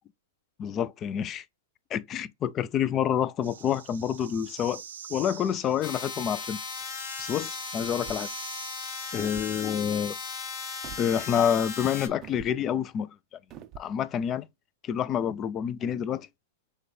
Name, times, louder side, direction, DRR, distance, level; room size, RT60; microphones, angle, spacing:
voice 1, 0.6-1.4 1.9-4.8 5.1-6.6 7.2-8.3 9.1-10.2 11.0-13.1 13.8-14.5 14.8-16.3, left 9 dB, 30° left, 0.3 m, -28 dB
sound 1, 3.4-9.6, right 8 dB, 80° right, 0.6 m, -45 dB
sound 2, 5.8-12.1, left 5 dB, 45° left, 1.1 m, -37 dB
sound 3, 7.8-8.4 9.1-9.5 10.8-11.1 12.2-12.6 13.5-13.9, right 8 dB, 35° right, 0.4 m, -45 dB
6.3 x 2.2 x 3.2 m
hypercardioid pair, 125°, 0 cm